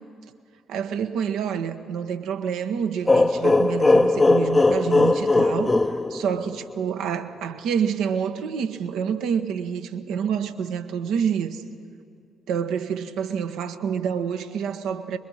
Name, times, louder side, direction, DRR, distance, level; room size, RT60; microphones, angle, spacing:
voice 1, 0.7-11.6 12.5-15.2, right 7 dB, 65° right, 1.0 m, -27 dB
sound 1, 3.1-6.8, left 2 dB, 20° left, 0.7 m, -19 dB
23.0 x 22.0 x 6.4 m
figure-of-eight pair, 45°, 0 cm